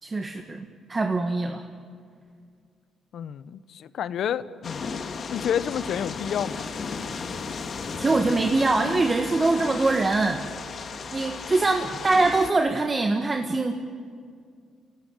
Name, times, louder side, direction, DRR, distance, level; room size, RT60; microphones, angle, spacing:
voice 1, 0.0-1.6 8.0-10.4 11.1-13.7, right 3 dB, 25° right, 4 dB, 1.7 m, -23 dB
voice 2, 3.1-4.9 5.3-6.7, left 9 dB, 70° left, 15 dB, 0.9 m, -29 dB
sound 1, 4.6-12.5, left 5 dB, 50° left, 1.9 m, -35 dB
29.0 x 17.0 x 9.3 m, 2.2 s
cardioid pair, 90°, 0 cm